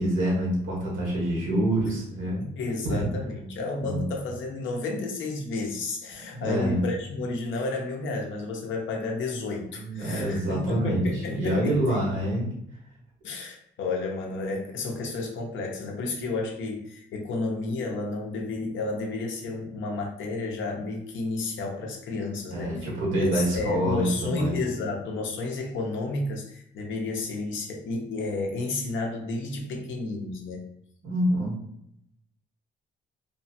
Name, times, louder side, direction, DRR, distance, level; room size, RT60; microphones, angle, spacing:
voice 1, 0.0-2.4 2.8-3.1 3.8-4.1 6.3-6.8 9.7-12.5 22.5-24.6 31.0-31.6, right 1 dB, 75° right, -4 dB, 1.4 m, -26 dB
voice 2, 2.4-12.1 13.2-22.8 23.1-30.6, left 3 dB, 75° left, 1 dB, 0.7 m, -31 dB
3.0 x 2.1 x 2.8 m, 0.74 s
cardioid pair, 90°, 20 cm